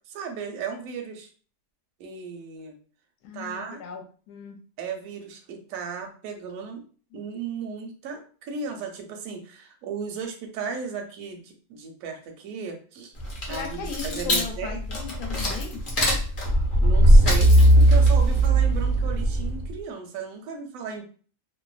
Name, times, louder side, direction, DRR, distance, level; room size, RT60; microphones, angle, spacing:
voice 1, 0.1-1.3 2.0-2.8 3.3-3.8 4.8-6.8 7.1-13.1 13.5-14.8 16.8-21.0, right 5 dB, 70° right, 4 dB, 0.9 m, -35 dB
voice 2, 3.2-4.6 13.5-15.8, left 7 dB, 75° left, 4 dB, 1.1 m, -37 dB
sound 1, 13.2-19.7, right 1 dB, 50° left, 0.6 m, -19 dB
2.7 x 2.1 x 2.3 m, 0.40 s
omnidirectional pair, 1.8 m